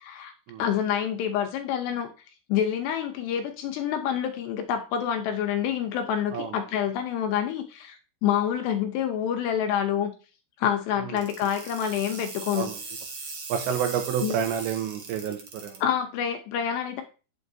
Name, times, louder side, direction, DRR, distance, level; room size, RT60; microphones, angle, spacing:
voice 1, 0.6-2.1 2.5-10.1 10.6-12.7 14.2-14.4 15.8-17.0, left 9 dB, 80° left, 4 dB, 2.8 m, -27 dB
sound 1, 11.2-15.8, right 4 dB, 55° right, 2.1 m, -39 dB
voice 2, 13.5-15.8, right 8 dB, 90° right, 6 dB, 3.4 m, -29 dB
8.9 x 6.8 x 2.7 m, 0.33 s
omnidirectional pair, 5.1 m